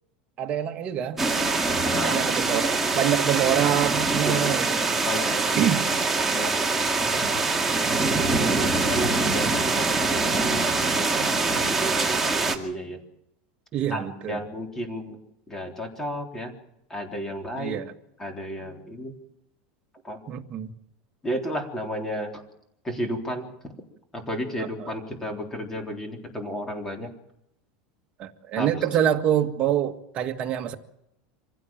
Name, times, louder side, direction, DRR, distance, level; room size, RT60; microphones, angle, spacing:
voice 1, 0.4-1.2 2.0-4.8 5.6-5.9 7.0-7.1 8.1-8.7 13.7-14.4 17.6-17.9 20.3-20.7 24.6-24.9 28.2-30.7, right 10 dB, 30° right, 1.8 m, -26 dB
sound 1, 1.2-12.6, right 3 dB, 5° right, 2.2 m, -24 dB
voice 2, 1.7-2.3 4.2-4.5 5.0-5.7 6.3-7.2 8.4-12.2 12.5-13.0 13.9-15.2 15.5-16.5 16.9-17.8 18.2-19.1 20.0-20.2 21.2-22.4 22.8-23.7 24.1-27.1 28.6-28.9, equal, 10° left, 3.7 m, -33 dB
26.0 x 16.0 x 7.4 m
supercardioid pair, 160°, 4 cm